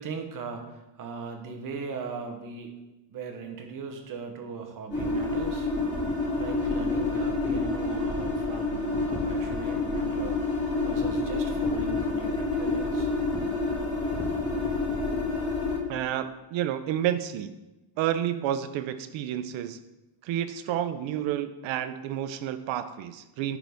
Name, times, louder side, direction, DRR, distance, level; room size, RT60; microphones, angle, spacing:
voice 1, 0.0-2.7 3.1-5.7 6.3-10.4 10.8-13.1, right 5 dB, 40° right, 4 dB, 1.0 m, -39 dB
sound 1, 4.9-15.8, left 3 dB, 20° left, 2.0 m, -28 dB
voice 2, 15.9-17.6 18.0-19.8 20.2-23.6, right 11 dB, 70° right, 11 dB, 0.6 m, -30 dB
10.5 x 3.9 x 3.5 m, 1.0 s
cardioid pair, 165°, 48 cm